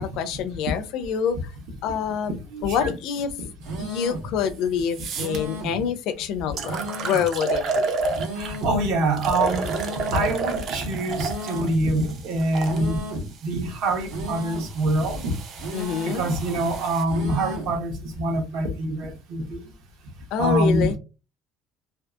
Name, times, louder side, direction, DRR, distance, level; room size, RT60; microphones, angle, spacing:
voice 1, 0.0-1.4 1.8-2.4 2.6-3.3 3.8-7.9 15.7-16.3 20.3-21.0, left 7 dB, 55° left, 0.4 m, -26 dB
voice 2, 2.5-2.9 8.4-9.7 10.1-13.0 13.4-15.3 16.1-19.6 20.4-21.0, right 1 dB, 55° right, 0.8 m, -25 dB
sound 1, 3.6-4.3 5.1-5.8 6.6-7.3 8.1-8.8 9.6-10.3 11.1-11.8 12.6-13.3 14.1-14.8 15.6-16.3 17.1-17.8, right 1 dB, 85° right, 1.1 m, -34 dB
sound 2, 4.4-4.5 4.9-5.4 6.1-6.2 6.6-8.6 9.2-12.8 13.6-17.0, right 3 dB, 40° right, 0.4 m, -31 dB
2.6 x 2.4 x 2.3 m
cardioid pair, 180°, 0 cm